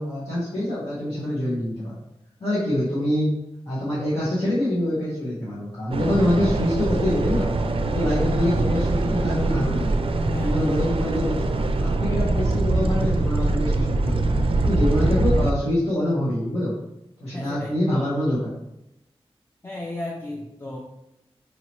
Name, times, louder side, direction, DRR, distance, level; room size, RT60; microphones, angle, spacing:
voice 1, 0.0-2.0 2.4-3.4 3.7-7.5 7.8-10.0 10.3-11.5 11.8-14.2 14.6-16.8 17.2-18.5, left 1 dB, 65° left, -11 dB, 1.4 m, -25 dB
sound 1, 5.9-15.5, right 2 dB, 60° right, 0.4 m, -23 dB
voice 2, 10.3-10.7 17.3-17.7 19.6-20.8, left 1 dB, 25° left, -2 dB, 0.6 m, -33 dB
4.8 x 2.8 x 3.0 m, 0.86 s
wide cardioid pair, 70°, 10 cm